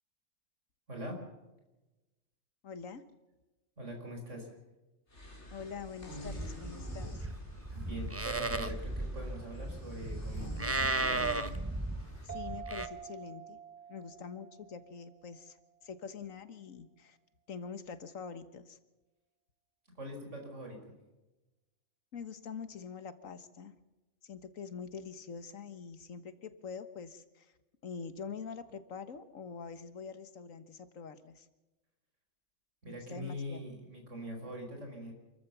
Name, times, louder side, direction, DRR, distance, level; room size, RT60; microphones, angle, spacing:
voice 1, 0.9-1.2 3.8-4.5 7.7-10.5 10.8-11.4 19.9-20.9 32.8-35.1, equal, 65° right, 2 dB, 5.5 m, -43 dB
voice 2, 2.6-3.0 5.5-7.3 12.2-13.6 13.9-15.6 15.8-17.2 17.5-18.8 22.1-23.7 24.2-27.5 27.8-31.5 32.9-33.6, left 6 dB, 85° left, 11 dB, 1.7 m, -45 dB
sound 1, 5.1-12.3, left 1 dB, 60° left, 3.8 m, -48 dB
Livestock farm animals working animals, 6.3-12.9, right 2 dB, 15° right, 0.7 m, -36 dB
sound 2, 12.3-15.6, right 8 dB, 35° right, 1.5 m, -48 dB
28.0 x 14.0 x 7.0 m, 1.1 s
omnidirectional pair, 1.3 m